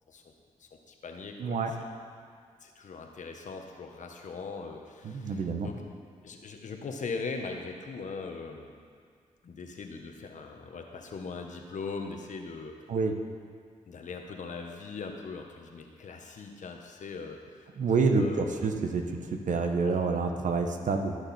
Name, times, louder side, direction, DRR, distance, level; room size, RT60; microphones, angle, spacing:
voice 1, 0.6-1.6 2.6-5.8 6.2-8.7 9.4-12.7 13.9-17.7 18.0-18.7 19.8-20.0, left 4 dB, 65° left, 3 dB, 1.3 m, -40 dB
voice 2, 1.4-1.7 5.0-5.7 12.9-13.1 17.8-21.2, right 4 dB, 70° right, 5 dB, 1.2 m, -28 dB
18.0 x 6.6 x 4.4 m, 2.1 s
supercardioid pair, 50°, 14 cm